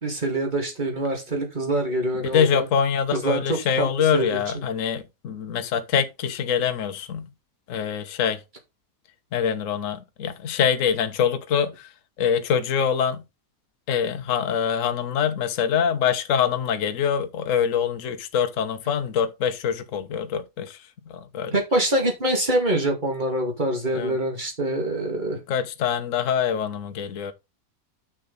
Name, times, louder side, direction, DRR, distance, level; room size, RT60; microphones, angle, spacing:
voice 1, 0.0-2.6 3.1-4.6 21.5-25.4, right 1 dB, 30° right, 2.3 m, -25 dB
voice 2, 2.2-7.3 7.7-8.4 9.3-11.9 12.2-13.2 13.9-21.6 23.9-24.2 25.5-27.3, left 7 dB, 55° left, 1.2 m, -24 dB
6.8 x 6.3 x 4.0 m
omnidirectional pair, 1.8 m